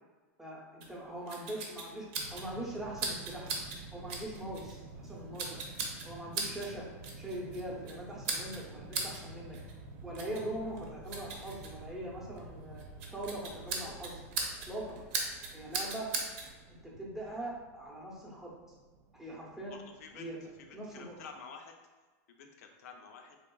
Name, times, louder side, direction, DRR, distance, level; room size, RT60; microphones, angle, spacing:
voice 1, 0.4-3.5 3.9-5.6 6.0-6.9 7.2-9.6 10.0-12.8 13.1-14.2 14.6-15.0 15.5-16.1 16.7-18.5 19.1-19.8 20.1-21.2, right 1 dB, 5° right, -5 dB, 0.6 m, -42 dB
sound 1, 0.8-16.5, right 4 dB, 45° right, 0.7 m, -41 dB
sound 2, 2.1-21.3, right 2 dB, 85° right, 0.5 m, -51 dB
voice 2, 19.7-20.3 20.7-21.7 22.3-23.4, left 5 dB, 70° left, 3 dB, 0.6 m, -50 dB
3.8 x 3.4 x 2.2 m, 1.3 s
supercardioid pair, 160°, 8 cm